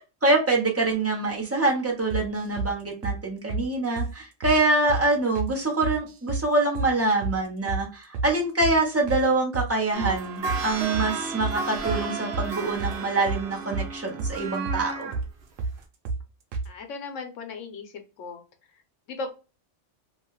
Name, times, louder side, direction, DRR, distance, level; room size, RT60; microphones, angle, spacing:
voice 1, 0.2-15.1, right 2 dB, 15° right, -1 dB, 0.6 m, -25 dB
sound 1, 2.1-2.7 3.0-3.2 3.5-3.7 4.0-4.1 4.4-4.6 4.9-5.1 5.4-5.5 5.8-6.5 6.8-6.9 7.2-7.4 7.7-7.8 8.1-8.3 8.6-8.8 9.1-9.2 9.5-10.2 10.5-10.6 10.9-11.1 11.4-11.6 11.9-12.0 12.3-12.5 12.8-13.0 13.3-13.9 14.2-14.4 14.7-14.8 15.1-15.3 15.6-15.8 16.1-16.2 16.5-16.7, right 3 dB, 85° right, 1.0 m, -30 dB
sound 2, 9.9-15.2 15.8-15.9, right 4 dB, 65° right, 0.9 m, -33 dB
voice 2, 16.7-18.4 19.1-19.3, left 4 dB, 85° left, 5 dB, 1.1 m, -37 dB
2.9 x 2.3 x 3.0 m, 0.31 s
omnidirectional pair, 1.3 m